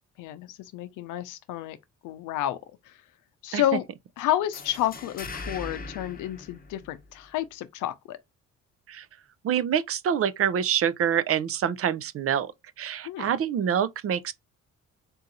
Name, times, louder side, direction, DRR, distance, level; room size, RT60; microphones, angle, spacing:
voice 1, 0.2-1.8 2.0-2.6 2.9-3.0 3.4-3.8 4.2-8.2 13.0-13.3, left 12 dB, 85° left, 0.6 m, -30 dB
sound 1, 4.5-7.2, left 3 dB, 30° left, 0.8 m, -40 dB
voice 2, 9.4-12.5 12.8-14.3, right 8 dB, 50° right, 0.5 m, -26 dB
3.8 x 2.7 x 3.9 m
cardioid pair, 90°, 30 cm